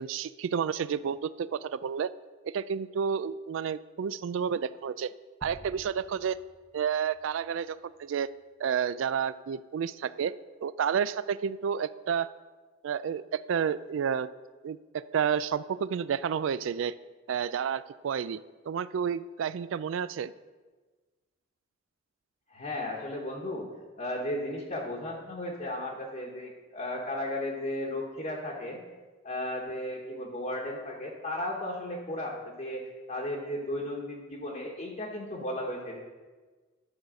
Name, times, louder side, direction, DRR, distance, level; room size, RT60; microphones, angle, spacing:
voice 1, 0.0-2.1 2.4-5.1 5.4-6.4 6.7-8.3 8.6-10.3 10.6-12.3 12.8-14.3 14.6-16.9 17.3-18.4 18.7-20.3, right 7 dB, 70° right, 16 dB, 0.3 m, -30 dB
sound 1, 5.4-8.2, equal, 5° right, 0.8 m, -52 dB
voice 2, 22.5-28.8 29.2-32.8 33.1-36.0, left 1 dB, 40° left, -3 dB, 1.2 m, -35 dB
12.0 x 4.8 x 6.2 m, 1.3 s
head